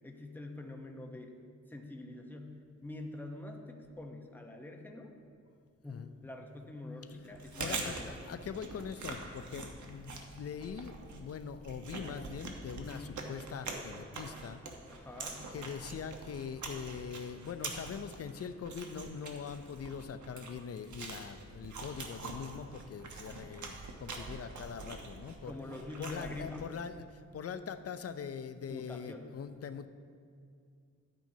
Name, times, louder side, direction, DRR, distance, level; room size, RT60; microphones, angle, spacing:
voice 1, 0.0-1.4 1.7-5.1 5.8-8.2 12.8-13.3 14.9-15.5 25.5-26.7 28.7-29.3, left 2 dB, 5° left, 2 dB, 0.9 m, -45 dB
Chewing mastication, 7.2-26.8, right 3 dB, 80° right, 1.1 m, -44 dB
voice 2, 7.6-14.6 15.5-25.6 26.0-29.9, left 6 dB, 55° left, 11 dB, 0.5 m, -42 dB
11.5 x 8.9 x 2.8 m, 2.3 s
cardioid pair, 80°, 29 cm